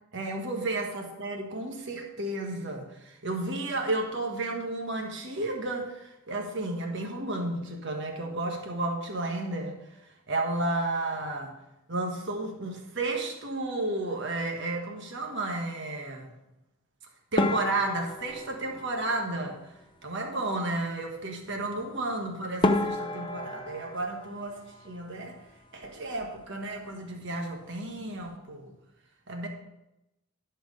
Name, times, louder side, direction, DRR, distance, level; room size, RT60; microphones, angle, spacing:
voice 1, 0.1-9.8 10.3-11.5 11.9-16.3 17.3-19.7 20.0-25.4 25.7-28.7 29.3-29.5, right 2 dB, 55° right, 2 dB, 1.3 m, -32 dB
sound 1, 17.4-19.8 22.1-22.2 22.6-25.4 25.6-26.4 26.7-26.9 27.2-27.3 28.0-28.3, left 2 dB, 20° left, 0.6 m, -32 dB
12.0 x 4.6 x 6.5 m, 0.92 s
head